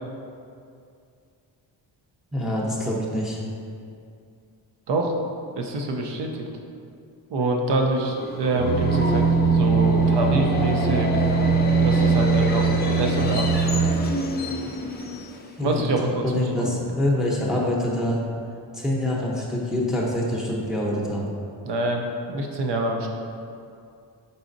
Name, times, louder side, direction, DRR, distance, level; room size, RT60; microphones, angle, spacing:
voice 1, 2.3-3.4 15.6-18.2 18.7-21.3, left 1 dB, ahead, -5 dB, 0.7 m, -25 dB
voice 2, 5.6-6.3 7.3-9.2 9.5-11.1 11.8-12.7 13.0-13.8 15.6-16.2 16.6-16.7 21.6-23.1, right 2 dB, 65° right, 2 dB, 0.7 m, -25 dB
Subway metro underground, 7.9-15.7, left 2 dB, 25° left, 0.4 m, -29 dB
sound 1, 8.6-13.9, right 5 dB, 30° right, 0.8 m, -21 dB
4.8 x 4.1 x 2.6 m, 2.4 s
cardioid pair, 90°, 44 cm